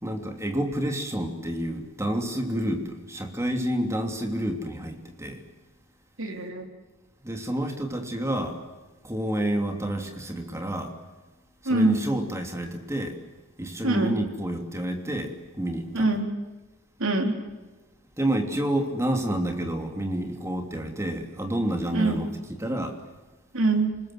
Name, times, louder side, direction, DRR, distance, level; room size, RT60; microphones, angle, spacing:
voice 1, 0.0-5.4 7.2-8.6 9.0-10.9 11.6-13.2 13.6-16.2 18.2-23.0, right 1 dB, 15° right, 4 dB, 3.0 m, -29 dB
voice 2, 6.2-6.7 11.7-12.0 13.8-14.2 15.9-16.3 17.0-17.3 21.9-22.2 23.5-23.9, right 2 dB, 65° right, 4 dB, 3.8 m, -24 dB
29.0 x 20.5 x 7.8 m, 1.2 s
head